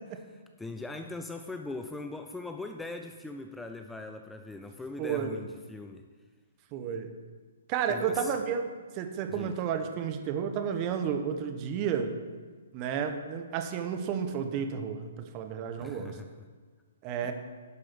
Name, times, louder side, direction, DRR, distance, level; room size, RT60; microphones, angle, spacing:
voice 1, 0.6-6.1 7.9-8.3 9.3-9.5 15.8-16.3 17.2-17.3, left 2 dB, 5° left, 6 dB, 0.4 m, -40 dB
voice 2, 5.0-5.4 6.7-7.1 7.7-8.6 8.9-12.2 12.7-16.2 17.0-17.3, right 7 dB, 30° right, 7 dB, 1.0 m, -31 dB
11.0 x 4.9 x 6.1 m, 1.4 s
figure-of-eight pair, 130°, 0 cm